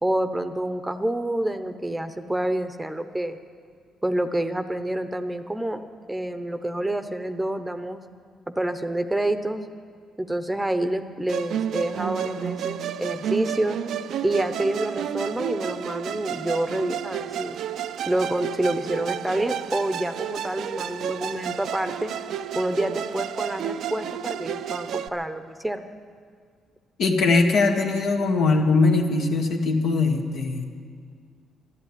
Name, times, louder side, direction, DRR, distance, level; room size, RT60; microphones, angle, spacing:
voice 1, 0.0-3.4 4.0-5.8 6.1-8.0 8.5-9.7 10.2-13.8 14.2-17.6 18.1-22.1 22.5-25.9, right 1 dB, 10° right, 9 dB, 0.8 m, -27 dB
Musical instrument, 11.3-25.1, right 9 dB, 75° right, 0.5 m, -31 dB
voice 2, 27.0-30.6, left 3 dB, 70° left, 2 dB, 1.9 m, -21 dB
12.0 x 12.0 x 9.9 m, 2.1 s
cardioid pair, 90°, 0 cm